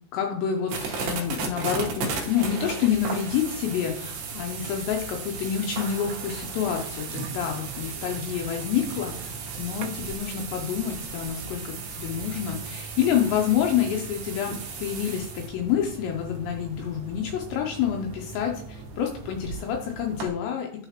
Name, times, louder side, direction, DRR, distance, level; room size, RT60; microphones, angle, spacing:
voice 1, 0.1-20.9, left 9 dB, 85° left, 2 dB, 2.6 m, -28 dB
sound 1, 0.7-20.3, right 5 dB, 70° right, 2.4 m, -36 dB
Water tap faucet / Sink (filling or washing) / Bathtub (filling or washing), 6.1-11.5, right 7 dB, 90° right, 2.5 m, -43 dB
11.5 x 4.0 x 2.9 m, 0.65 s
omnidirectional pair, 5.6 m